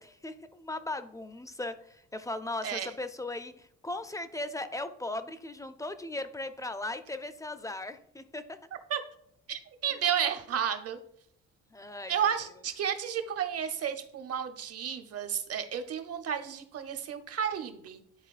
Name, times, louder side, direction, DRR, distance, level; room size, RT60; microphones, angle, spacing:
voice 1, 0.0-8.6 9.9-10.0 11.7-12.3, left 2 dB, 10° left, 10 dB, 0.5 m, -38 dB
voice 2, 9.5-11.0 12.1-18.0, right 8 dB, 55° right, 8 dB, 0.8 m, -32 dB
10.5 x 3.9 x 2.5 m, 0.70 s
cardioid pair, 90°, 30 cm